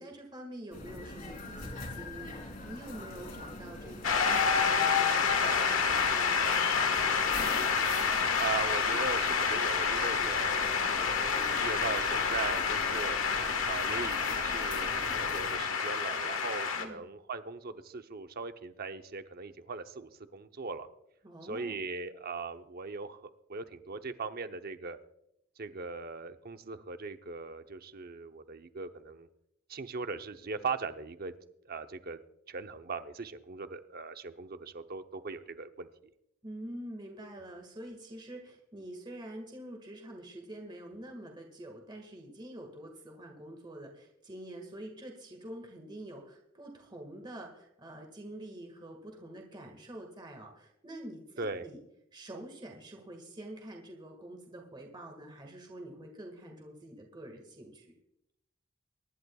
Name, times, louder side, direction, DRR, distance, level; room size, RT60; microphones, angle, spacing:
voice 1, 0.0-2.4 2.6-7.2 16.8-17.0 21.2-21.8 36.4-51.8 52.1-57.9, right 1 dB, 25° right, 2 dB, 1.8 m, -46 dB
sound 1, 0.7-15.6, left 2 dB, 45° left, 2.8 m, -44 dB
Shout / Cheering / Applause, 4.0-16.8, left 6 dB, 85° left, 1.5 m, -28 dB
voice 2, 8.4-13.2 13.7-20.9 21.4-25.0 25.6-29.3 29.7-31.3 31.7-32.2 32.5-35.9 51.4-51.7, right 4 dB, 50° right, 9 dB, 0.8 m, -39 dB
24.0 x 11.0 x 2.3 m, 0.81 s
head